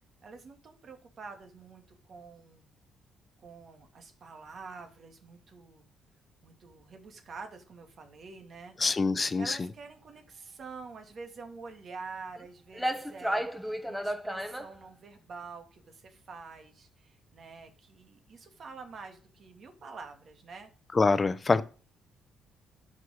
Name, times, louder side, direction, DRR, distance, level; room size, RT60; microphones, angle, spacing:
voice 1, 0.2-2.7 3.4-5.9 6.4-8.7 9.4-20.7, right 4 dB, 55° right, 5 dB, 2.4 m, -47 dB
voice 2, 8.8-9.7 20.9-21.6, left 4 dB, 30° left, 14 dB, 0.8 m, -25 dB
sound 1, 12.4-12.5 12.7-14.7, equal, ahead, 1.1 m, -32 dB
11.5 x 5.5 x 6.5 m, 0.38 s
cardioid pair, 90°, 0 cm